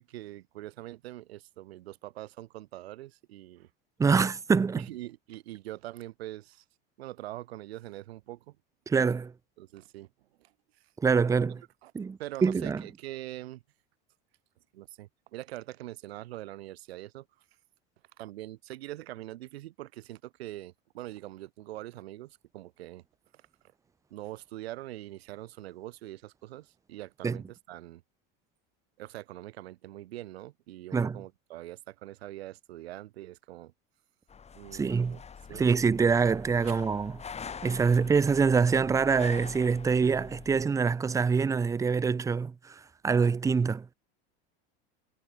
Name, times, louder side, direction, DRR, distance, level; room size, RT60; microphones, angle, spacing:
voice 1, 0.0-3.7 4.8-6.6 7.0-8.6 9.6-10.1 10.4-10.5 11.8-11.9 12.2-13.6 14.7-17.3 18.2-23.0 23.3-23.4 24.1-28.0 29.0-33.7 34.5-35.2 35.5-35.6, right 15 dB, 90° right, 6.9 m, -43 dB
voice 2, 4.0-4.9 8.9-9.3 11.0-11.6 11.9-12.8 27.2-27.4 30.9-31.2 34.7-35.2 35.5-37.2 37.6-43.9, right 5 dB, 10° right, 0.4 m, -25 dB
sound 1, 34.3-40.6, left 6 dB, 20° left, 2.7 m, -45 dB
supercardioid pair, 125°, 30 cm